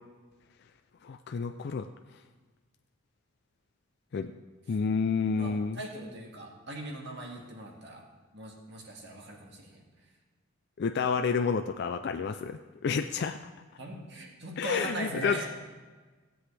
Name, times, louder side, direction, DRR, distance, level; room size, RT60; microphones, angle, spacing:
voice 1, 1.0-1.9 4.1-4.3 4.7-5.8 10.8-13.4 14.6-15.4, left 5 dB, 55° left, 7 dB, 0.3 m, -30 dB
voice 2, 5.3-8.0 8.3-9.8 13.8-15.4, right 2 dB, 55° right, -1 dB, 2.0 m, -40 dB
16.5 x 7.8 x 3.3 m, 1.3 s
head